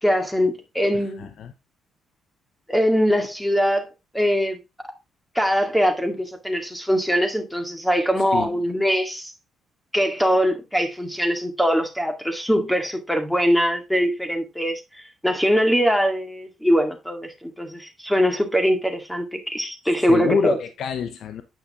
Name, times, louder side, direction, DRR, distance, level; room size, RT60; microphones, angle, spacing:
voice 1, 0.0-1.3 2.7-3.9 4.1-4.6 5.4-9.3 9.9-14.8 15.2-20.6, equal, 5° left, 2.1 m, -22 dB
voice 2, 0.9-1.5 8.3-8.6 20.0-21.4, left 7 dB, 70° left, 0.9 m, -27 dB
9.2 x 5.6 x 3.5 m
cardioid pair, 90°, 0 cm